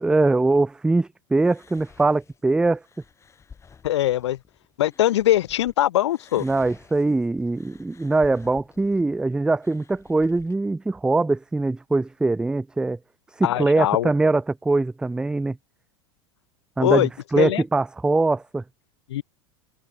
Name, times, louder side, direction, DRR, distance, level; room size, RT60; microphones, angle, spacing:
voice 1, 0.0-2.8 6.4-13.0 13.4-15.6 16.8-18.6, right 3 dB, 5° right, 0.4 m, -22 dB
sound 1, 1.4-5.7 6.1-10.6, left 6 dB, 20° left, 6.2 m, -52 dB
voice 2, 3.8-4.4 4.8-6.5 13.4-14.1 16.8-17.1 17.4-17.6 19.1-19.2, left 13 dB, 90° left, 0.6 m, -21 dB
supercardioid pair, 120°, 14 cm